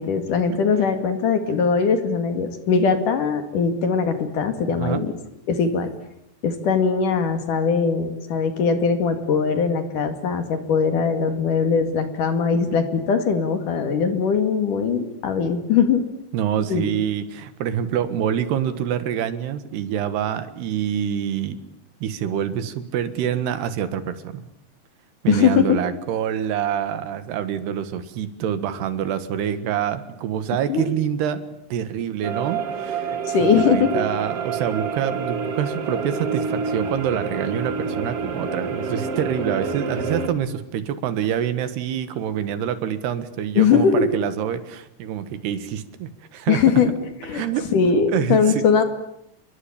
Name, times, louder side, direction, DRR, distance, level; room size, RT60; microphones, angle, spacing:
voice 1, 0.0-5.1 5.5-5.9 6.4-16.0 16.7-16.9 25.3-25.8 30.7-30.9 33.3-34.1 43.6-44.0 46.5-46.9 47.2-47.4 47.7-48.8, left 6 dB, 55° left, 8 dB, 3.4 m, -20 dB
voice 2, 16.3-21.6 22.0-24.4 25.2-31.4 31.7-33.2 33.5-46.8 47.3-47.7 48.1-48.7, right 9 dB, 75° right, 12 dB, 3.6 m, -26 dB
sound 1, 32.2-40.3, right 5 dB, 40° right, 2.8 m, -28 dB
28.5 x 22.5 x 8.7 m, 0.76 s
omnidirectional pair, 4.8 m